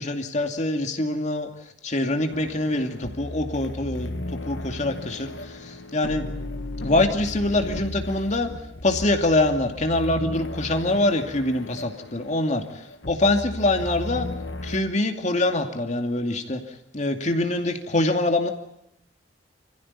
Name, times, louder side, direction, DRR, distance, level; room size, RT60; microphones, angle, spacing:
voice 1, 0.0-1.5 1.8-4.1 4.5-6.3 6.8-8.5 8.8-12.6 13.1-14.3 14.6-16.6 16.9-18.5, left 2 dB, 40° left, 4 dB, 2.5 m, -24 dB
sound 1, 2.3-14.8, left 1 dB, 85° left, 1.9 m, -35 dB
27.0 x 15.5 x 9.9 m, 0.82 s
head